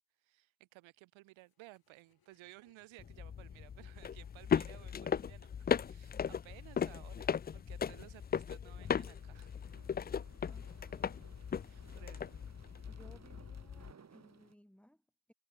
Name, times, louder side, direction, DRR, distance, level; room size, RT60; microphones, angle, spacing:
voice 1, 0.2-9.6 11.7-12.4, right 19 dB, 70° right, 2.7 m, -58 dB
sound 1, 1.3-6.2, left 8 dB, 45° left, 5.8 m, -74 dB
sound 2, 3.0-13.9, left 7 dB, 20° left, 0.5 m, -37 dB
sound 3, 8.7-14.5, right 6 dB, 30° right, 2.4 m, -62 dB
voice 2, 10.5-12.1 12.9-15.3, equal, ahead, 5.9 m, -63 dB
hypercardioid pair, 55°, 49 cm